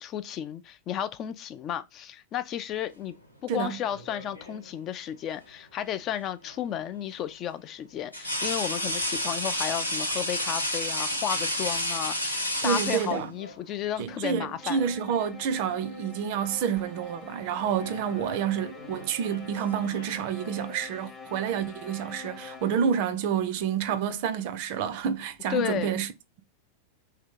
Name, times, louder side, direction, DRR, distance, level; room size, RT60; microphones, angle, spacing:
voice 1, 0.0-3.1 3.4-14.8 25.5-26.0, left 10 dB, 35° left, 0.3 m, -33 dB
sound 1, 3.8-4.7 6.4-6.6 8.1-13.6 14.8-15.0 15.4-16.1 16.4-16.8 17.6-20.3, left 1 dB, 85° left, 0.7 m, -32 dB
voice 2, 12.6-13.3 14.0-26.1, right 8 dB, 50° right, 0.5 m, -29 dB
sound 2, 14.6-23.1, left 5 dB, 20° left, 0.8 m, -46 dB
2.9 x 2.8 x 3.6 m
figure-of-eight pair, 90°, 0 cm